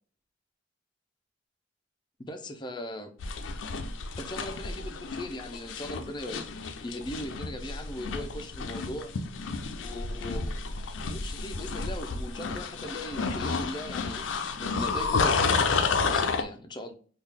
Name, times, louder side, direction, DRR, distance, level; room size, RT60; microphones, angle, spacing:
voice 1, 2.3-3.1 4.2-6.5 6.8-9.1 9.8-10.5 11.0-14.2 14.6-15.7 16.1-16.9, left 1 dB, 25° left, 0.5 m, -39 dB
sound 1, 3.2-16.4, left 4 dB, 80° left, 0.5 m, -31 dB
3.6 x 2.4 x 3.3 m
head